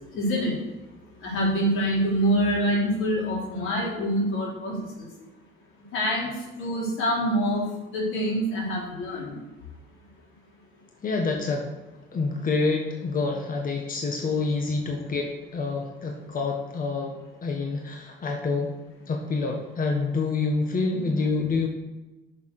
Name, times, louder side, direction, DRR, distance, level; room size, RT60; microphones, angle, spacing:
voice 1, 0.1-0.5 1.2-5.1 5.9-6.3 6.6-7.6 7.9-9.3 20.9-21.0, equal, 85° left, -4 dB, 4.3 m, -25 dB
voice 2, 11.0-11.7 12.1-18.7 19.1-21.7, left 3 dB, 45° left, 1 dB, 1.6 m, -27 dB
9.6 x 6.8 x 6.7 m, 1.1 s
cardioid pair, 90°, 20 cm